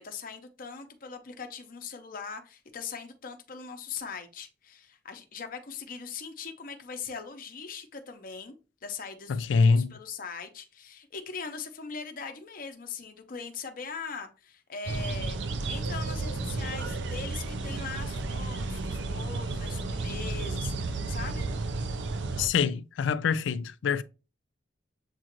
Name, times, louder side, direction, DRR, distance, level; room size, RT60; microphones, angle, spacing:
voice 1, 0.0-8.6 8.8-15.4 15.7-21.5, left 5 dB, 50° left, 0.7 m, -40 dB
voice 2, 9.3-9.9 22.4-24.0, left 5 dB, 90° left, 0.3 m, -25 dB
sound 1, 14.9-22.5, right 3 dB, 70° right, 0.5 m, -32 dB
7.3 x 2.5 x 2.9 m
head